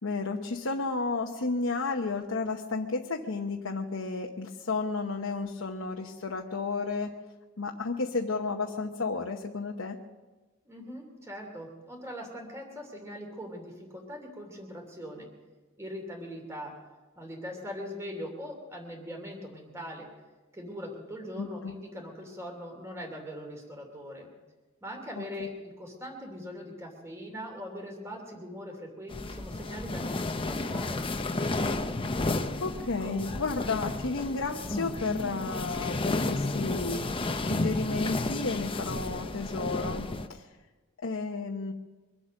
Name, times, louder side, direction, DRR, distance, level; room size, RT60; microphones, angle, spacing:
voice 1, 0.0-7.1 7.6-10.0 21.4-21.7 25.2-25.5 32.0-32.2 32.6-40.0 40.3-40.5 41.0-41.7, left 3 dB, 70° left, 1 dB, 1.0 m, -32 dB
voice 2, 10.6-15.3 15.8-16.7 17.2-20.1 20.5-24.3 24.8-31.0, equal, 15° right, 1 dB, 2.8 m, -41 dB
sound 1, 29.1-40.3, left 2 dB, 25° left, 0.7 m, -32 dB
24.0 x 8.2 x 6.5 m, 1.2 s
head